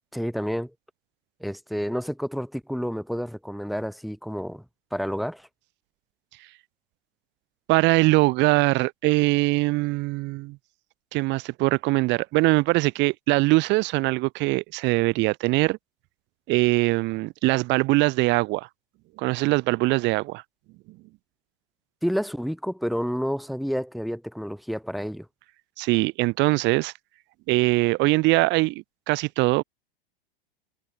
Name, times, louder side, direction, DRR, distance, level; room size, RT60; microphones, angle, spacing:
voice 1, 0.1-0.7 1.4-4.6 4.9-5.5 22.0-25.3, equal, ahead, 1.5 m, -29 dB
voice 2, 7.7-10.6 11.1-15.8 16.5-18.7 19.2-20.4 25.8-26.9 27.5-29.6, right 22 dB, 35° right, 0.8 m, -22 dB
figure-of-eight pair, 95°, 31 cm